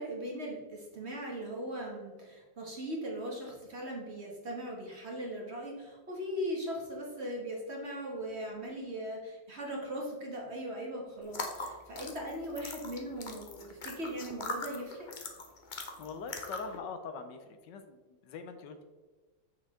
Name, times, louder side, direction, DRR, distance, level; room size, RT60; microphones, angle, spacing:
voice 1, 0.0-15.1, equal, 40° right, -2 dB, 1.5 m, -39 dB
sound 1, 11.2-16.8, left 3 dB, 45° left, 0.6 m, -41 dB
voice 2, 16.0-18.8, left 5 dB, 75° left, 8 dB, 1.3 m, -43 dB
6.4 x 6.3 x 3.6 m, 1.3 s
omnidirectional pair, 2.0 m